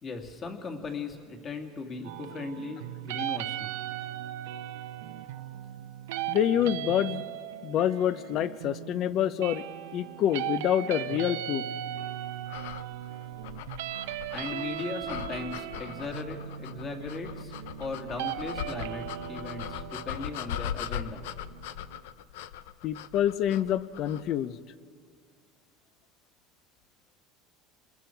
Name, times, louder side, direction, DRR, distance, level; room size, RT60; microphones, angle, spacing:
voice 1, 0.0-3.8 14.3-17.5 17.8-21.3, left 3 dB, 30° left, 3 dB, 2.5 m, -38 dB
sound 1, 2.0-22.0, right 12 dB, 90° right, 0.9 m, -38 dB
voice 2, 6.3-7.2 7.6-9.6 9.9-11.7 22.8-24.6, left 10 dB, 50° left, 16 dB, 0.7 m, -27 dB
sound 2, 12.5-24.4, left 10 dB, 85° left, 0.6 m, -40 dB
28.0 x 21.0 x 4.6 m, 2.1 s
supercardioid pair, 135°, 0 cm